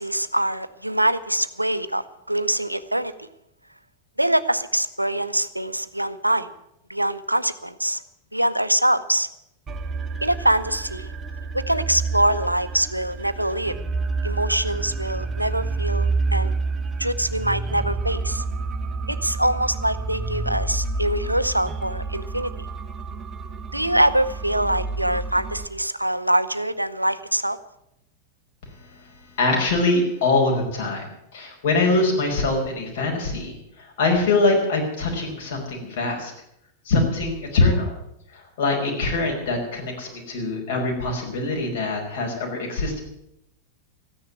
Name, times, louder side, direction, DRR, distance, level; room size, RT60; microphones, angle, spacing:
voice 1, 0.0-3.3 4.2-6.5 6.9-8.0 8.3-9.3 10.2-11.1 11.5-13.7 14.2-16.5 17.0-18.4 19.1-22.7 23.7-27.6, right 1 dB, 85° right, 13 dB, 0.7 m, -24 dB
sound 1, 9.7-25.7, right 3 dB, 20° right, 1.2 m, -29 dB
voice 2, 29.4-36.3 36.9-37.9 38.3-43.0, left 2 dB, 55° left, 1 dB, 5.3 m, -23 dB
14.0 x 10.0 x 9.3 m, 0.79 s
figure-of-eight pair, 90°, 0 cm